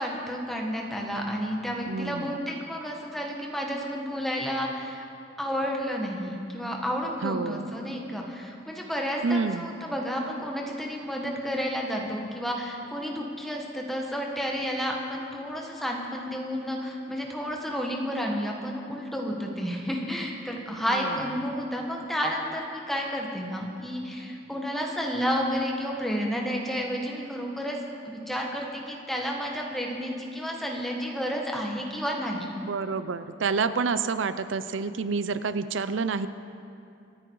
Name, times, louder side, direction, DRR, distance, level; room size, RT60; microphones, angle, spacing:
voice 1, 0.0-5.0 5.4-32.5, equal, ahead, -1 dB, 1.5 m, -31 dB
voice 2, 1.9-2.4 7.2-7.8 9.2-9.7 20.9-21.2 32.5-36.3, right 4 dB, 80° right, 12 dB, 0.5 m, -28 dB
25.5 x 9.9 x 4.7 m, 2.6 s
head